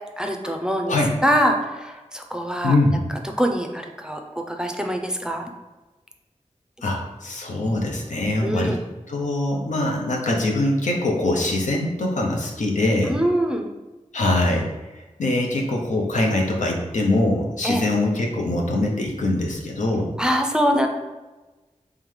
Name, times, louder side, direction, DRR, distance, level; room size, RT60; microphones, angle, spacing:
voice 1, 0.2-1.0 1.2-2.7 3.4-4.2 4.5-5.5 8.4-8.8 13.1-13.7 17.6-17.8 20.2-20.9, equal, 5° right, 3 dB, 0.5 m, -23 dB
voice 2, 2.6-3.0 6.8-8.8 9.1-13.2 14.1-20.1, left 2 dB, 90° left, 0 dB, 0.7 m, -23 dB
3.7 x 3.2 x 3.2 m, 1.2 s
wide cardioid pair, 60°, 12 cm